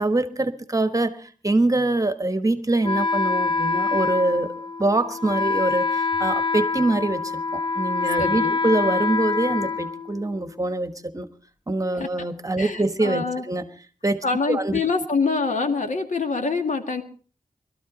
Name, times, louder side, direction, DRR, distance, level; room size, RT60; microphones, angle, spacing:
voice 1, 0.0-4.5 4.8-11.3 11.7-13.6 14.0-14.8, right 2 dB, 25° right, 10 dB, 1.3 m, -24 dB
Wind instrument woodwind instrument, 2.8-10.6, left 4 dB, 40° left, 0.7 m, -25 dB
voice 2, 8.2-8.6 11.9-12.3 12.6-13.5 14.2-17.0, left 4 dB, 70° left, 6 dB, 2.0 m, -25 dB
22.0 x 13.0 x 4.1 m, 0.40 s
wide cardioid pair, 90°, 13 cm